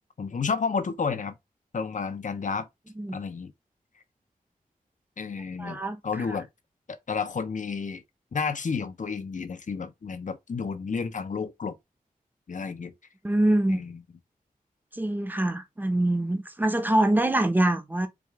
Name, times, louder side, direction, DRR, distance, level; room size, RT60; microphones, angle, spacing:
voice 1, 0.2-1.4 1.7-2.7 3.1-3.5 5.2-6.5 6.9-8.0 8.3-11.8 12.5-12.9 13.7-14.0, left 5 dB, 60° left, 0.7 m, -31 dB
voice 2, 5.6-6.0 13.2-13.8 14.9-18.1, right 1 dB, 10° right, 0.8 m, -24 dB
4.8 x 2.4 x 3.4 m
wide cardioid pair, 95°, 15 cm